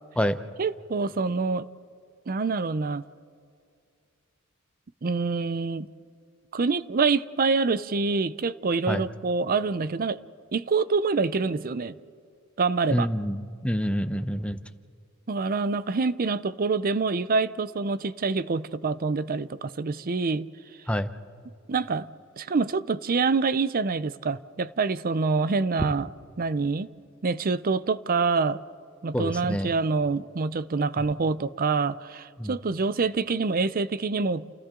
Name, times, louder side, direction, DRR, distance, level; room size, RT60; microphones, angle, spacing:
voice 1, 0.6-1.7 2.3-3.0 5.0-5.9 6.5-10.2 10.5-12.0 12.6-13.1 15.3-20.5 21.7-22.1 22.4-26.1 26.4-26.9 27.2-28.6 29.0-34.5, right 4 dB, 45° right, 0.6 m, -26 dB
voice 2, 12.9-14.6 20.9-21.1 29.1-29.7 32.4-32.5, equal, 5° left, 0.8 m, -27 dB
30.0 x 29.0 x 3.8 m
head